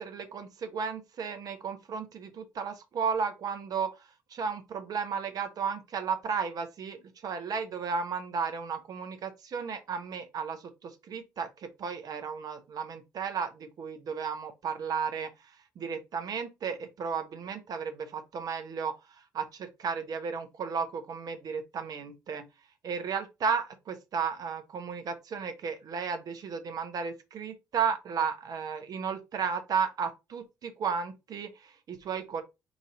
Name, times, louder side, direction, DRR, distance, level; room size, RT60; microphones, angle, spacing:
voice 1, 0.0-4.0 4.3-15.3 15.8-18.9 19.3-22.4 22.8-32.4, right 6 dB, 60° right, 0.9 m, -34 dB
3.1 x 2.7 x 3.9 m
hypercardioid pair, 50°, 8 cm